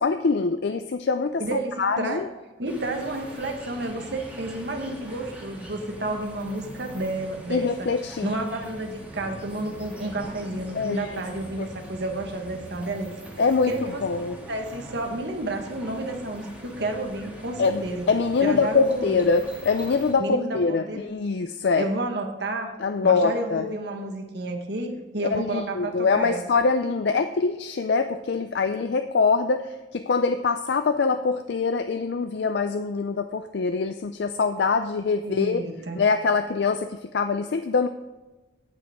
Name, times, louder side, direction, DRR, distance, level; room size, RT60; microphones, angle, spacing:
voice 1, 0.0-2.3 7.5-8.3 10.7-11.2 11.6-11.7 13.4-14.4 17.6-21.9 22.8-23.7 25.3-35.6 35.9-37.9, left 4 dB, 60° left, 8 dB, 0.4 m, -24 dB
voice 2, 1.4-2.2 2.6-7.9 8.2-13.1 13.7-14.2 14.5-18.0 18.4-19.2 20.2-21.0 21.8-22.7 23.0-26.4 35.2-36.0, right 2 dB, 60° right, 4 dB, 1.4 m, -31 dB
sound 1, 2.7-20.1, equal, 5° right, 1.8 m, -42 dB
17.0 x 6.2 x 3.6 m, 1.1 s
head